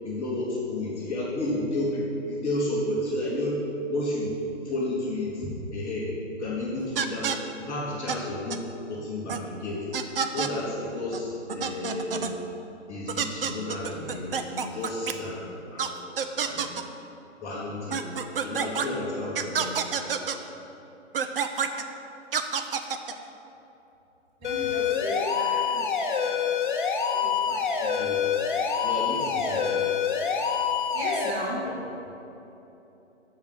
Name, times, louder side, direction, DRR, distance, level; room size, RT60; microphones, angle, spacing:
voice 1, 0.0-3.6 3.9-4.3 4.6-6.1 6.4-7.3 7.6-9.8 10.3-12.3 12.9-15.9 16.4-16.7 17.4-18.0 18.4-20.0 27.8-28.2 28.8-29.9 31.6-31.7, left 1 dB, 15° left, -10 dB, 1.3 m, -31 dB
sound 1, 7.0-7.4 8.1-8.2 8.5-8.6 9.3-9.4 9.9-10.5 11.1-11.2 11.5-12.3 13.1-15.1 15.8-15.9 16.2-16.8 17.9-18.9 19.4-20.4 21.1-21.8 22.3-23.1, right 7 dB, 50° right, 0.7 m, -28 dB
sound 2, 24.4-31.3, left 7 dB, 40° left, 0.9 m, -26 dB
voice 2, 24.4-26.6 27.1-27.9 30.9-31.6, equal, 25° right, -5 dB, 2.2 m, -36 dB
7.1 x 6.7 x 7.7 m, 3.0 s
figure-of-eight pair, 135°, 37 cm